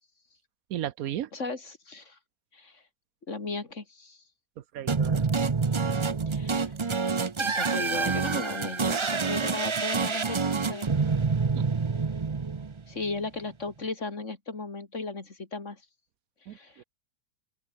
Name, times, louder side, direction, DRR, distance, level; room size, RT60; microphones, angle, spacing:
voice 1, 0.7-1.3 4.6-5.2 11.5-11.7 16.5-16.8, right 11 dB, 75° right, 1.2 m, -35 dB
voice 2, 1.3-2.2 2.5-2.8 3.3-4.2 6.3-6.7 7.4-10.9 12.9-15.8 16.5-16.8, left 3 dB, 55° left, 3.2 m, -36 dB
sound 1, 4.9-13.1, right 5 dB, 30° right, 0.5 m, -27 dB
open air
omnidirectional pair, 1.6 m